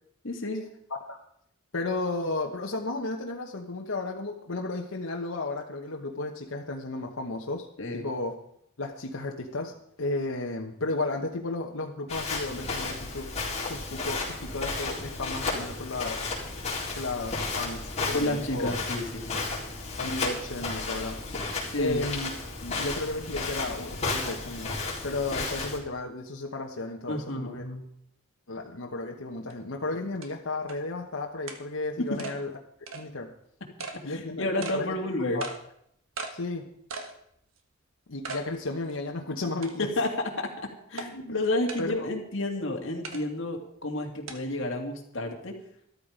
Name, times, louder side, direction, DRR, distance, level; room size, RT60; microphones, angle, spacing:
voice 1, 0.2-0.6 7.8-8.1 18.1-19.4 21.6-22.0 27.1-27.8 32.0-32.2 34.1-35.4 39.8-45.6, left 1 dB, 65° left, 2 dB, 2.4 m, -31 dB
voice 2, 1.7-7.7 7.9-8.3 8.8-16.2 16.9-18.7 20.0-21.4 21.8-22.3 22.6-27.6 28.5-32.5 32.9-33.3 34.0-34.9 35.3-35.5 36.3-36.7 38.1-39.9 41.1-41.3 41.8-42.1, left 2 dB, 90° left, 1 dB, 1.2 m, -33 dB
Walk footsteps, 12.1-25.8, left 3 dB, 35° left, 4.0 m, -33 dB
sound 1, 29.5-29.6 30.2-30.3 30.7-30.8 31.5-31.6 32.2-32.4 32.9-33.0 33.8-34.0 34.6-34.8 35.4-35.6 36.2-36.3 36.9-37.1 37.6-37.7 38.2-38.5 38.9-39.0 39.6-40.0 41.0-41.1 41.7-41.9 43.0-43.2 44.3-44.4, right 3 dB, 75° right, 1.6 m, -37 dB
13.0 x 12.5 x 5.1 m, 0.72 s
head